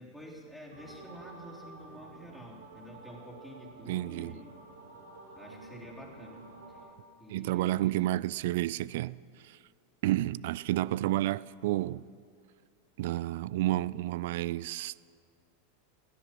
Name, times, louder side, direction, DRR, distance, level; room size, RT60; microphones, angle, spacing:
voice 1, 0.0-4.5 5.4-6.4 6.7-6.9 7.2-8.0, equal, ahead, 3.6 m, -49 dB
sound 1, 0.7-6.9, right 3 dB, 80° right, 2.4 m, -50 dB
voice 2, 3.9-4.3 7.3-9.2 9.4-9.6 10.0-12.0 13.0-14.9, right 15 dB, 60° right, 0.3 m, -30 dB
17.0 x 10.5 x 7.6 m
figure-of-eight pair, 90°, 0 cm